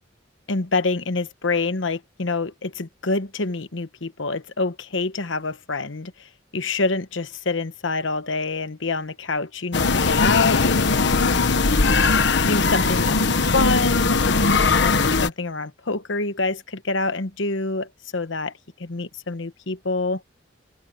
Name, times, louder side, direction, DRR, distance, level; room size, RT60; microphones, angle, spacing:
voice 1, 0.5-11.4 12.5-18.5 18.8-20.2, left 3 dB, 80° left, 1.2 m, -26 dB
sound 1, 9.7-15.3, left 4 dB, 65° left, 1.3 m, -19 dB
head